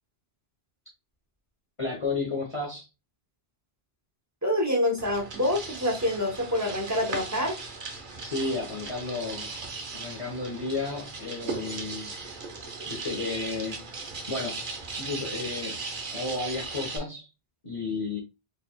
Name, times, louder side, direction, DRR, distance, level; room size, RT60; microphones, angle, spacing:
voice 1, 1.8-2.9 8.2-9.6 9.9-12.1 12.9-13.9 14.3-14.7 15.0-15.8 16.1-17.3 17.6-18.2, left 3 dB, 30° left, 1.2 m, -32 dB
voice 2, 4.4-7.6, left 1 dB, 15° right, 0.9 m, -26 dB
sound 1, 5.0-17.0, right 3 dB, 55° right, 1.0 m, -38 dB
4.1 x 3.5 x 2.3 m
omnidirectional pair, 1.1 m